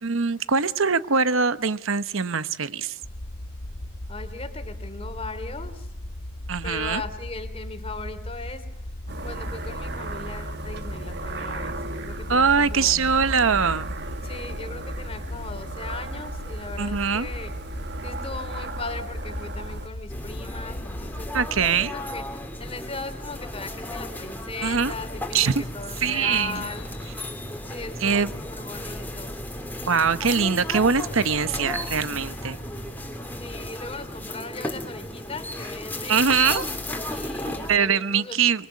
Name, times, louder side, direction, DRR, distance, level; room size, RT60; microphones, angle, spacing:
voice 1, 0.0-3.0 6.5-7.0 12.3-13.9 16.8-17.3 21.3-21.9 24.6-24.9 25.3-25.6 26.0-26.6 28.0-28.3 29.9-32.6 36.1-36.7 37.5-38.7, right 5 dB, 70° right, 13 dB, 1.0 m, -22 dB
sound 1, 3.0-21.7, left 1 dB, 55° left, 1.5 m, -37 dB
voice 2, 4.1-5.9 6.6-8.7 9.2-13.1 14.2-17.5 18.0-21.3 21.8-22.2 22.6-26.9 27.7-29.4 33.4-36.3 37.1-38.4, left 3 dB, 25° left, 9 dB, 3.0 m, -38 dB
sound 2, 9.1-19.9, right 2 dB, 50° right, 1.5 m, -36 dB
sound 3, 20.1-37.8, left 1 dB, 10° left, 3.2 m, -34 dB
26.5 x 22.5 x 8.3 m, 0.82 s
head